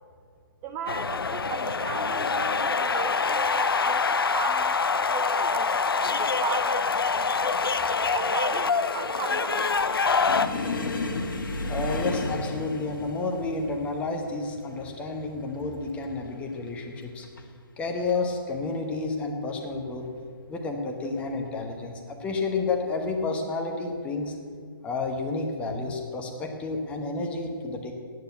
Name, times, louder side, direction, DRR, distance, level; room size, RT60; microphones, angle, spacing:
voice 1, 0.6-4.8 5.1-7.5 8.1-9.8, right 6 dB, 15° right, 4 dB, 0.4 m, -36 dB
sound 1, 0.9-10.5, left 5 dB, 80° left, 0.6 m, -25 dB
sound 2, 10.3-17.5 17.8-18.2 18.5-18.7 19.5-20.1 21.0-21.2 22.6-22.8, left 2 dB, 65° left, 1.6 m, -34 dB
voice 2, 11.7-17.3 17.8-20.1 20.5-24.3 24.8-27.9, left 3 dB, 10° left, 3 dB, 1.1 m, -30 dB
9.4 x 9.1 x 8.1 m, 2.1 s
figure-of-eight pair, 145°, 12 cm